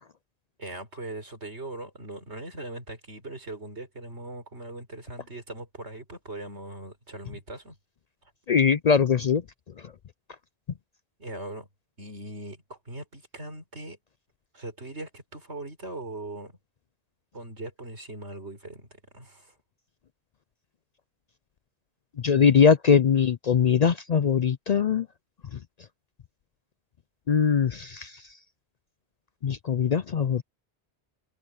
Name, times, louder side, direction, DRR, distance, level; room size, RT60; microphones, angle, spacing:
voice 1, 0.6-7.8 11.2-11.7 12.0-14.0 14.5-16.5 17.3-19.5, right 2 dB, 90° right, 5.2 m, -40 dB
voice 2, 8.5-9.4 22.2-25.1 25.5-25.6 27.3-28.2 29.4-30.4, left 6 dB, 50° left, 0.5 m, -21 dB
omnidirectional pair, 1.1 m